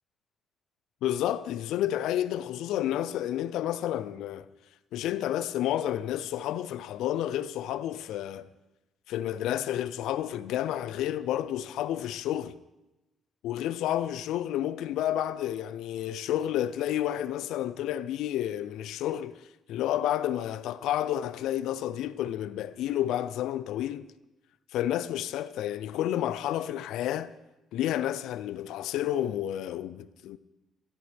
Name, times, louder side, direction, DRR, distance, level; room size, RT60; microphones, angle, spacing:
voice 1, 1.0-4.5 4.9-8.5 9.1-12.6 13.4-19.4 19.7-24.1 24.7-27.3 27.7-30.4, left 12 dB, 90° left, 0.5 m, -30 dB
20.5 x 13.5 x 3.5 m
cardioid pair, 90°, 0 cm